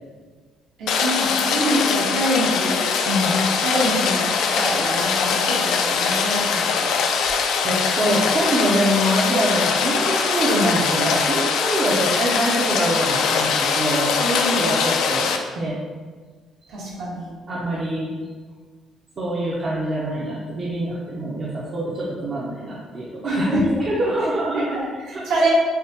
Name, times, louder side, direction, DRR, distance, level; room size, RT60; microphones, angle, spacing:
voice 1, 0.8-2.8 3.2-6.9 16.7-17.3 23.2-23.8 24.5-25.5, right 1 dB, 75° right, -7 dB, 1.5 m, -25 dB
Rain, 0.9-15.4, left 5 dB, 75° left, 0.4 m, -22 dB
voice 2, 7.6-15.8 17.5-18.1 19.2-24.7 25.1-25.2, right 1 dB, 35° right, -6 dB, 0.6 m, -24 dB
6.7 x 2.3 x 2.8 m, 1.5 s
cardioid pair, 160°, 0 cm